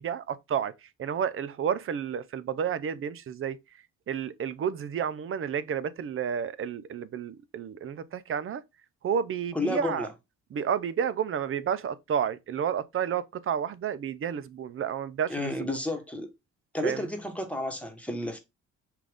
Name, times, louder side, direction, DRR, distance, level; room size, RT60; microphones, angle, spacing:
voice 1, 0.0-3.6 4.1-8.6 9.0-10.1 10.5-15.8 16.8-17.1, right 8 dB, 45° right, 0.5 m, -31 dB
voice 2, 9.5-10.1 15.3-16.3 16.7-18.4, left 1 dB, 5° left, 1.3 m, -31 dB
5.7 x 2.5 x 3.5 m
cardioid pair, 90°, 30 cm